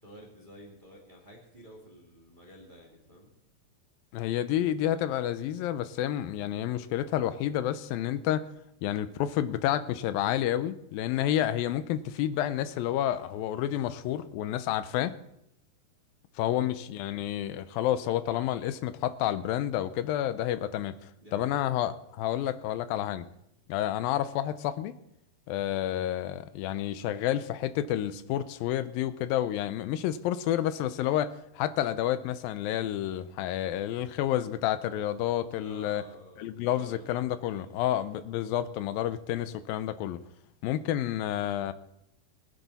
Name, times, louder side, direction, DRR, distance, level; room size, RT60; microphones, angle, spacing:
voice 1, 0.0-3.3 16.4-16.8 21.2-21.7 35.6-38.1, right 1 dB, 15° right, -2 dB, 1.8 m, -51 dB
voice 2, 4.1-8.4 8.8-15.2 16.4-23.3 23.7-24.9 25.5-36.0 36.4-40.2 40.6-41.7, left 12 dB, 85° left, 13 dB, 2.4 m, -30 dB
20.5 x 10.5 x 4.1 m, 0.78 s
omnidirectional pair, 4.1 m